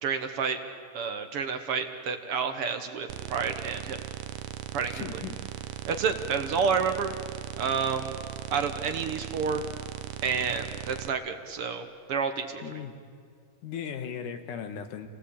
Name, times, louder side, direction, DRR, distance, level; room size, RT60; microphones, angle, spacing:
voice 1, 0.0-0.6 0.9-4.0 4.7-5.1 5.9-7.1 7.6-8.2 8.5-9.6 10.2-12.6, right 6 dB, 60° right, 7 dB, 1.6 m, -29 dB
sound 1, 3.1-11.1, right 11 dB, 75° right, 1.5 m, -38 dB
voice 2, 4.9-5.4 12.6-12.9 13.6-15.1, left 8 dB, 75° left, 7 dB, 2.9 m, -37 dB
28.0 x 18.0 x 8.6 m, 2.2 s
omnidirectional pair, 3.8 m